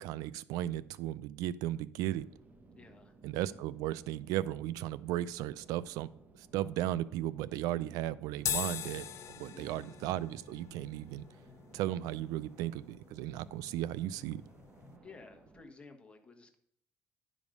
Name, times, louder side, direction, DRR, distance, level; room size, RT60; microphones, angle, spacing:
voice 1, 0.0-2.3 3.2-6.1 6.4-9.1 9.4-11.2 11.7-14.4, right 13 dB, 90° right, 19 dB, 0.4 m, -35 dB
sound 1, 2.2-15.6, right 3 dB, 30° right, 1.1 m, -59 dB
voice 2, 2.7-3.1 9.5-9.9 15.0-16.6, left 3 dB, 20° left, 4 dB, 1.3 m, -54 dB
sound 2, 8.4-15.0, left 9 dB, 55° left, 0.8 m, -42 dB
10.5 x 5.1 x 5.3 m, 0.72 s
cardioid pair, 105°, 6 cm